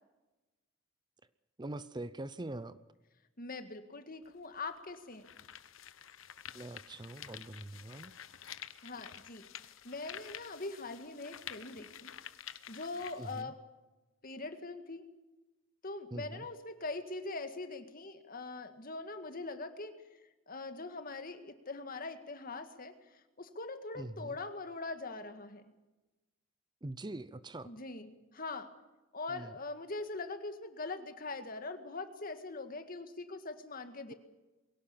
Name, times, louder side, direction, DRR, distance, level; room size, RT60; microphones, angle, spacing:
voice 1, 1.6-2.8 6.5-8.1 13.2-13.5 16.1-16.4 24.0-24.4 26.8-27.7 29.3-29.5, right 2 dB, 20° right, 15 dB, 0.6 m, -43 dB
voice 2, 3.4-5.3 8.5-9.5 9.8-12.1 12.7-13.6 14.2-15.0 15.8-19.9 20.5-25.7 27.6-28.7 29.1-34.1, left 3 dB, 45° left, 8 dB, 1.9 m, -42 dB
sound 1, 4.2-4.3 4.9-13.4, left 10 dB, 90° left, 1.0 m, -49 dB
22.5 x 17.5 x 8.7 m, 1.1 s
head